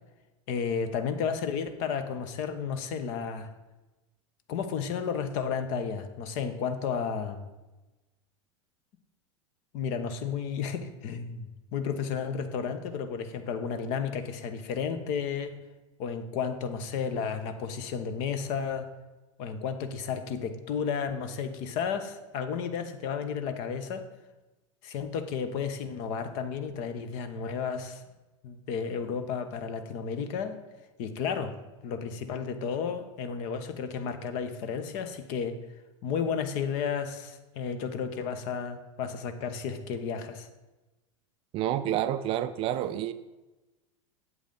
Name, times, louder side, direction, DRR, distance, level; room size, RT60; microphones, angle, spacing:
voice 1, 0.5-3.5 4.5-7.5 9.7-15.5 16.0-18.9 19.4-24.0 24.8-28.0 28.4-30.6 31.0-31.5 31.8-35.6 36.0-40.5, left 6 dB, 45° left, 9 dB, 0.9 m, -32 dB
voice 2, 41.5-43.1, right 11 dB, 35° right, 13 dB, 0.4 m, -29 dB
8.2 x 7.7 x 3.9 m, 1.1 s
figure-of-eight pair, 90°, 17 cm